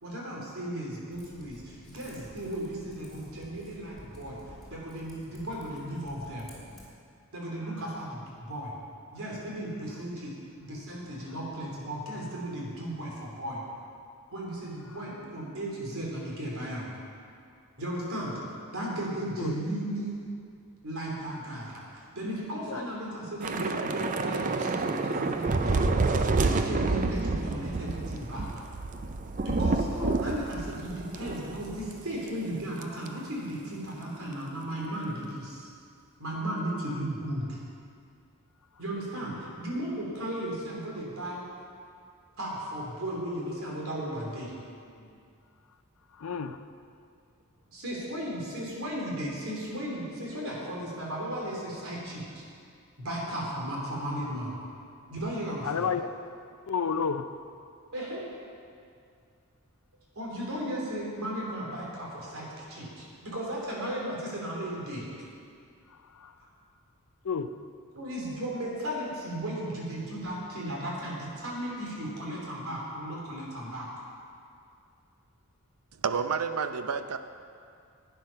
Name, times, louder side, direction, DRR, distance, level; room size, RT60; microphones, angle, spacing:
voice 1, 0.0-4.4 4.7-6.5 7.3-8.7 9.1-10.3 10.6-13.6 14.3-16.9 17.8-18.4 18.7-20.1 20.8-25.9 26.3-28.5 29.4-35.7 36.2-37.6 38.8-41.4 42.4-44.5 44.9-45.1 47.7-52.4 53.0-54.5 55.1-55.9 57.9-58.2 60.1-65.3 66.4-66.5 67.9-73.9, right 1 dB, 75° right, -4 dB, 3.2 m, -35 dB
Typing, 1.1-6.9, left 1 dB, ahead, 2.6 m, -51 dB
Thunder / Rain, 23.4-32.0 32.3-32.5 32.8-33.1, right 3 dB, 35° right, 0.5 m, -29 dB
voice 2, 46.2-46.6 55.6-56.0 56.7-57.3 66.2-66.3 67.2-67.5, left 6 dB, 80° left, 10 dB, 0.5 m, -30 dB
voice 3, 76.0-77.2, right 6 dB, 90° right, 10 dB, 0.6 m, -29 dB
11.5 x 9.2 x 5.6 m, 2.4 s
head